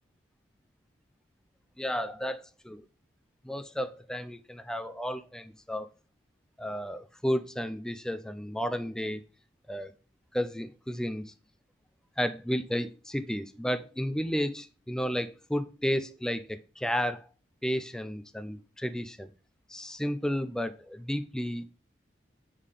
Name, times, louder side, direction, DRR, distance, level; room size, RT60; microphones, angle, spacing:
voice 1, 1.8-2.8 3.4-5.9 6.6-9.2 9.7-9.9 10.3-11.3 12.2-17.3 17.6-19.3 19.7-21.7, equal, 5° left, 11 dB, 0.3 m, -32 dB
8.2 x 3.7 x 3.3 m, 0.35 s
head